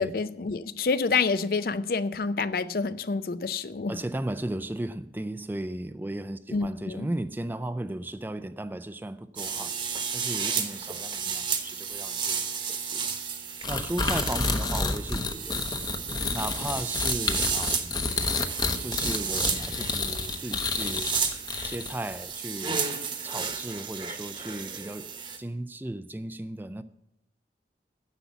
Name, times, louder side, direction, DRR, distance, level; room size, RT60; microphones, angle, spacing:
voice 1, 0.0-4.0 6.5-7.1, left 4 dB, 55° left, 0.4 m, -28 dB
voice 2, 3.9-9.7 10.1-12.5 12.8-13.1 13.7-15.8 16.3-18.0 18.8-21.2 21.6-22.9 23.2-25.1 25.4-26.8, right 1 dB, 10° right, 0.3 m, -35 dB
sound 1, 9.4-25.4, right 6 dB, 30° right, 1.0 m, -33 dB
sound 2, 13.6-22.1, left 4 dB, 25° left, 0.7 m, -29 dB
10.0 x 7.1 x 8.0 m
head